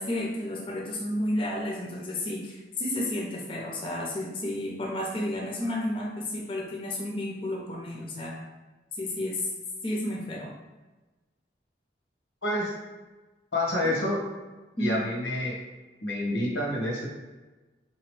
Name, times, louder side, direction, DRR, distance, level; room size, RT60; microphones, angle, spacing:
voice 1, 0.0-8.4 9.0-9.5 9.8-10.5 14.8-15.0, left 1 dB, 30° left, -2 dB, 0.5 m, -31 dB
voice 2, 12.4-12.8 13.5-14.2 14.8-15.6 16.0-17.1, left 1 dB, 90° left, -1 dB, 1.0 m, -28 dB
3.8 x 2.9 x 3.1 m, 1.2 s
head